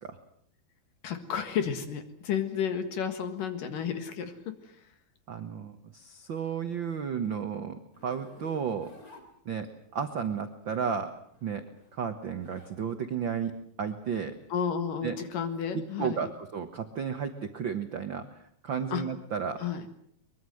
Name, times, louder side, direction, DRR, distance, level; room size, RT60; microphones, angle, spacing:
voice 1, 1.0-4.8 14.5-16.2 18.9-19.0 19.6-19.8, left 7 dB, 70° left, 9 dB, 3.3 m, -32 dB
voice 2, 5.3-8.9 9.4-9.7 9.9-11.1 11.4-11.6 11.9-14.4 15.0-15.2 15.7-18.3 18.6-19.6, right 7 dB, 70° right, 8 dB, 1.1 m, -33 dB
Zipper (clothing), 7.9-10.0 11.1-12.8 13.2-15.6, left 3 dB, 25° left, 3.6 m, -54 dB
23.0 x 23.0 x 7.8 m, 0.65 s
omnidirectional pair, 4.2 m